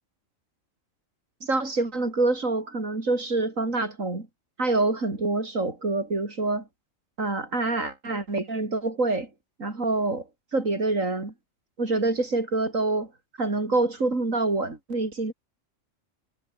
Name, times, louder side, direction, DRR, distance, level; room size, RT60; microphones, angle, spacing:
voice 1, 1.4-4.3 4.6-6.7 7.2-9.3 9.6-10.3 10.5-11.3 11.8-13.1 13.4-15.3, right 2 dB, 85° right, 4.7 m, -26 dB
omnidirectional pair, 1.3 m